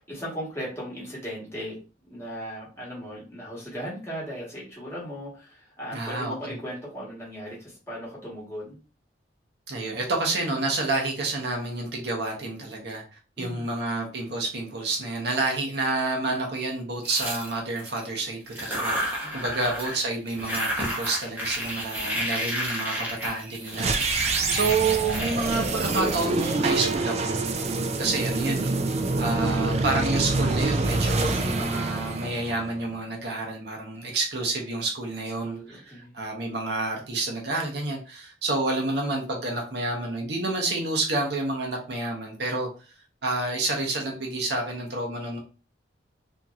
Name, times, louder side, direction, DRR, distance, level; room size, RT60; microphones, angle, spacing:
voice 1, 0.1-1.8 2.1-8.8 13.4-13.7 19.2-19.6 24.4-24.7 35.4-36.1, equal, 15° left, -5 dB, 1.2 m, -37 dB
voice 2, 5.9-6.6 9.7-13.0 13.4-27.4 28.0-28.7 29.2-42.7 43.2-45.4, right 2 dB, 60° right, 0 dB, 0.7 m, -29 dB
sound 1, 17.0-18.0 18.5-20.0 20.3-26.7, equal, 10° right, 0.7 m, -31 dB
sound 2, 23.7-32.9, right 3 dB, 35° right, 0.3 m, -26 dB
2.9 x 2.6 x 2.3 m, 0.35 s
head